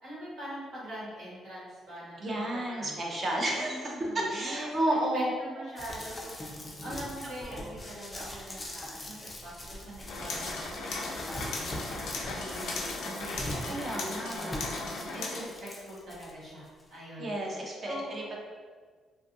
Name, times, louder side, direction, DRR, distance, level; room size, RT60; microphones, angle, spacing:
voice 1, 0.0-6.3 6.8-13.9 14.4-17.5 17.8-18.4, equal, 85° right, -9 dB, 1.3 m, -43 dB
voice 2, 2.2-5.3 7.6-7.7 13.7-14.6 17.2-18.2, right 1 dB, 35° right, -1 dB, 0.5 m, -31 dB
sound 1, 5.8-16.3 16.8-16.9, left 1 dB, 20° left, 0.4 m, -41 dB
Treadle Metalworking Lathe, 10.1-15.4, left 3 dB, 90° left, 0.4 m, -37 dB
2.5 x 2.3 x 2.6 m, 1.5 s
cardioid pair, 135°, 0 cm